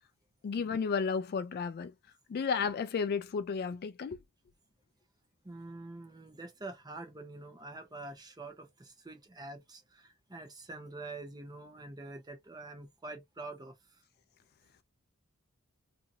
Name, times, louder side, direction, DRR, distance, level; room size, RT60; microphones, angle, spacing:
voice 1, 0.4-1.9 2.3-4.2, left 5 dB, 45° left, 0.3 m, -32 dB
voice 2, 5.4-14.0, right 2 dB, 20° right, 0.8 m, -46 dB
2.7 x 2.5 x 2.7 m
head